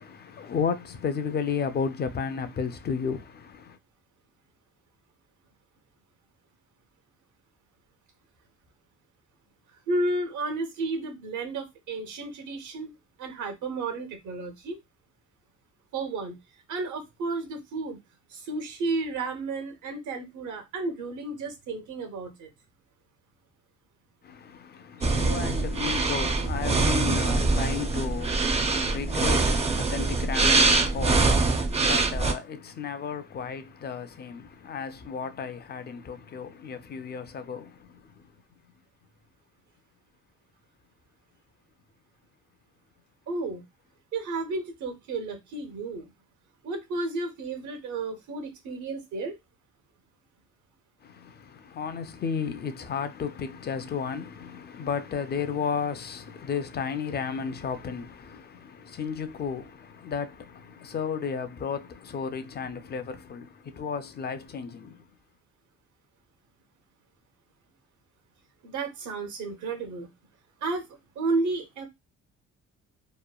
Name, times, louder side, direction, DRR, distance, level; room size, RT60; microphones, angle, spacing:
voice 1, 0.0-3.8 24.2-38.3 51.0-65.0, left 6 dB, 35° left, 0.4 m, -33 dB
voice 2, 9.9-12.9 13.2-14.8 15.9-16.4 16.7-18.0 18.3-22.5 25.0-25.1 43.3-43.6 44.1-46.1 46.6-49.4 68.6-70.1 70.6-70.9 71.1-71.9, right 3 dB, 75° right, 1.0 m, -32 dB
sound 1, 25.0-32.3, right 3 dB, 20° right, 0.5 m, -24 dB
3.0 x 2.1 x 2.2 m
cardioid pair, 90°, 30 cm